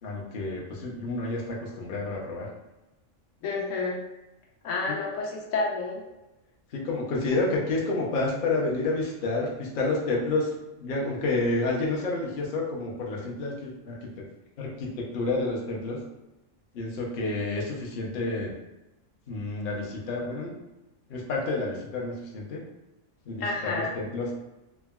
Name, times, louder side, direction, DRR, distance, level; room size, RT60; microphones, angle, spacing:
voice 1, 0.0-2.5 4.9-5.0 6.7-14.1 14.6-16.0 16.7-18.5 19.3-20.5 21.1-22.6 23.3-24.3, left 2 dB, 55° left, -3 dB, 0.6 m, -29 dB
voice 2, 3.4-4.0 4.6-6.0 23.4-23.9, left 3 dB, 80° left, -1 dB, 1.0 m, -29 dB
3.5 x 2.1 x 2.2 m, 0.99 s
omnidirectional pair, 1.4 m